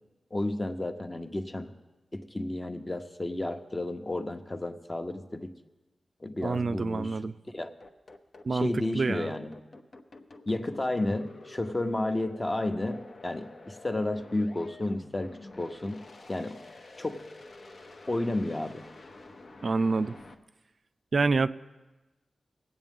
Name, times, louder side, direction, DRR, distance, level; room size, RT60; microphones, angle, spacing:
voice 1, 0.3-1.7 2.1-5.5 6.2-7.2 7.5-7.7 8.5-9.5 10.5-16.0 16.3-16.6 17.0-17.2 18.1-18.8, left 1 dB, 30° left, 6 dB, 0.8 m, -32 dB
voice 2, 6.4-7.3 8.4-9.3 19.6-20.2 21.1-21.5, right 4 dB, 60° right, 13 dB, 0.3 m, -27 dB
sound 1, 7.8-20.3, left 2 dB, 65° left, 0.8 m, -49 dB
20.0 x 8.2 x 3.6 m, 1.1 s
cardioid pair, 65°, 0 cm